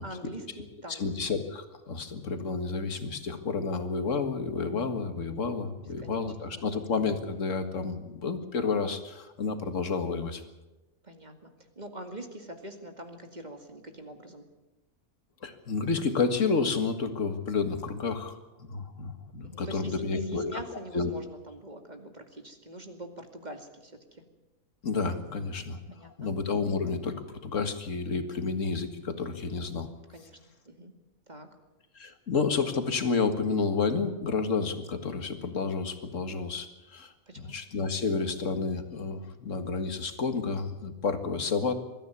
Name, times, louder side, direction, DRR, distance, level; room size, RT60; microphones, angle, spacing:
voice 1, 0.0-1.2 5.8-6.7 11.0-14.4 19.4-24.2 25.9-26.3 30.1-30.4 30.7-30.9 31.3-31.5 37.3-37.6, right 1 dB, 30° right, 5 dB, 2.3 m, -44 dB
voice 2, 0.9-10.4 15.4-20.6 20.9-21.1 24.8-25.8 26.2-29.9 32.0-41.7, left 4 dB, 65° left, 8 dB, 2.1 m, -30 dB
22.0 x 14.0 x 9.6 m, 1.1 s
omnidirectional pair, 1.5 m